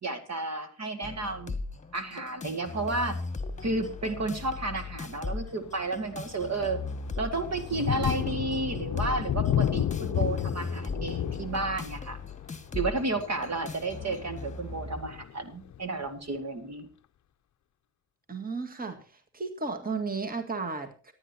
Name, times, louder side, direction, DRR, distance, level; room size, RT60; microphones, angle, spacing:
voice 1, 0.0-1.6 1.9-3.2 3.6-6.8 7.2-12.2 12.7-16.9, right 2 dB, 40° right, 8 dB, 2.1 m, -32 dB
sound 1, 1.0-15.0, left 3 dB, 15° left, 1.8 m, -39 dB
Thunder, 4.0-4.3 4.9-5.0 5.5-16.0, left 10 dB, 40° left, 0.8 m, -33 dB
voice 2, 18.3-21.1, right 4 dB, 20° right, 6 dB, 2.0 m, -34 dB
27.0 x 9.4 x 2.9 m, 0.36 s
hypercardioid pair, 50°, 43 cm